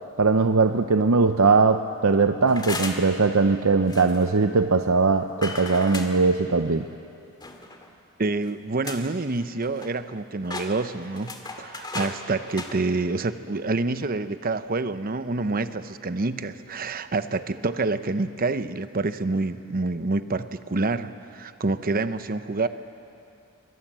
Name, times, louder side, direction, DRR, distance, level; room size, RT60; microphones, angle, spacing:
voice 1, 0.2-6.9, right 4 dB, 75° right, 8 dB, 0.7 m, -20 dB
sound 1, 2.5-3.1 3.9-4.2 5.4-6.1 7.4-7.9 8.4-8.5 8.8-9.1 9.4-10.1 10.4-12.2 12.5-12.7, left 3 dB, 20° left, 2.1 m, -35 dB
voice 2, 8.2-22.7, right 3 dB, 45° right, 11 dB, 0.8 m, -27 dB
27.0 x 23.0 x 7.5 m, 2.6 s
head